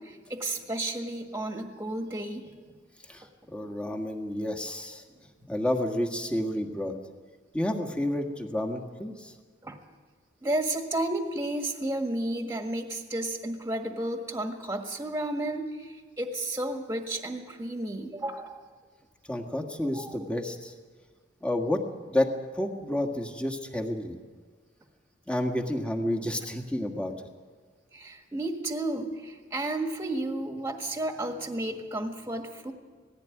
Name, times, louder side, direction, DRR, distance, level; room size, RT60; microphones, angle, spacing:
voice 1, 0.0-2.5 9.6-9.8 10.4-18.6 19.9-20.2 27.9-32.7, right 1 dB, 15° right, 4 dB, 1.7 m, -32 dB
voice 2, 3.5-5.0 5.5-6.9 7.5-9.3 19.3-20.7 21.4-21.8 22.1-22.3 22.5-24.2 25.3-27.1, left 1 dB, 5° left, 3 dB, 1.7 m, -30 dB
18.5 x 15.5 x 9.1 m, 1.5 s
head